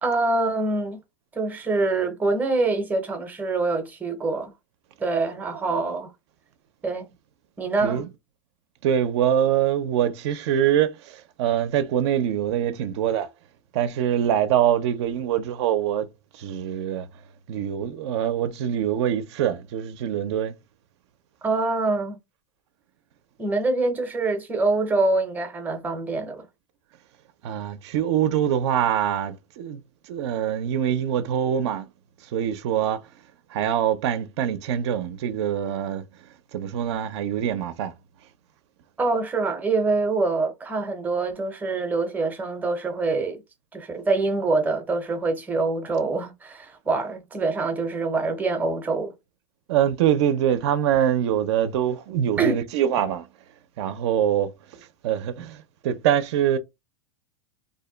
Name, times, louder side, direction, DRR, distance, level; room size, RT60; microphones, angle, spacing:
voice 1, 0.0-1.0 1.4-4.5 5.0-6.1 6.8-7.1 7.6-8.0 21.4-22.2 23.4-26.4 39.0-43.4 43.7-49.1 52.4-52.6, right 3 dB, 10° right, 0.6 m, -25 dB
voice 2, 8.8-13.3 13.7-16.1 16.3-17.1 17.5-20.5 27.4-29.8 30.1-31.9 32.3-33.0 33.5-36.0 36.5-37.9 49.7-53.3 53.8-56.6, right 10 dB, 60° right, 0.4 m, -24 dB
2.6 x 2.1 x 3.7 m
supercardioid pair, 160°, 16 cm